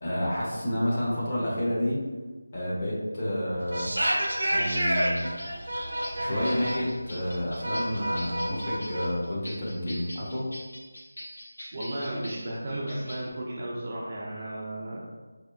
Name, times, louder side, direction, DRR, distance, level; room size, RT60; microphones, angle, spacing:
voice 1, 0.0-2.0 2.5-3.9 4.5-5.3 6.2-10.4, left 1 dB, 20° left, -7 dB, 0.6 m, -29 dB
sound 1, 3.6-9.0, right 1 dB, 80° right, 0.8 m, -29 dB
sound 2, 4.7-13.3, equal, 80° left, 1.3 m, -43 dB
voice 2, 11.7-15.0, right 1 dB, 25° right, -4 dB, 0.4 m, -34 dB
4.3 x 2.7 x 2.4 m, 1.3 s
figure-of-eight pair, 180°, 0 cm